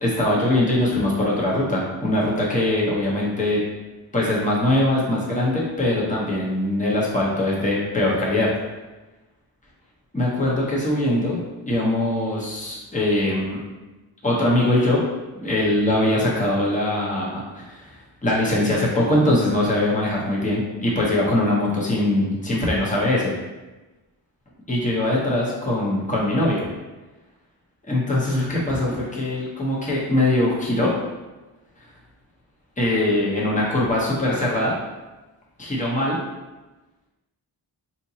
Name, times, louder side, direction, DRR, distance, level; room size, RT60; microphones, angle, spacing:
voice 1, 0.0-3.6 4.1-8.5 10.1-13.6 14.2-15.0 15.3-23.3 24.7-26.6 27.9-30.9 32.8-34.7 35.6-36.2, left 1 dB, 15° left, -5 dB, 0.9 m, -22 dB
3.5 x 2.8 x 2.8 m, 1.1 s
cardioid pair, 55°, 47 cm